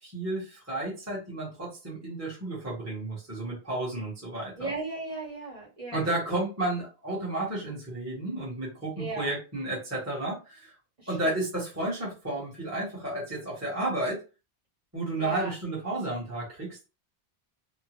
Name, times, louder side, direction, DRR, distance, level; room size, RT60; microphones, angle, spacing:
voice 1, 0.0-4.7 5.9-10.7 11.1-14.2 14.9-16.8, right 2 dB, 15° right, -5 dB, 1.0 m, -32 dB
voice 2, 4.6-6.0 9.0-9.3 11.0-11.3 15.2-15.5, right 2 dB, 35° right, -6 dB, 1.3 m, -36 dB
2.8 x 2.2 x 2.9 m, 0.31 s
omnidirectional pair, 1.1 m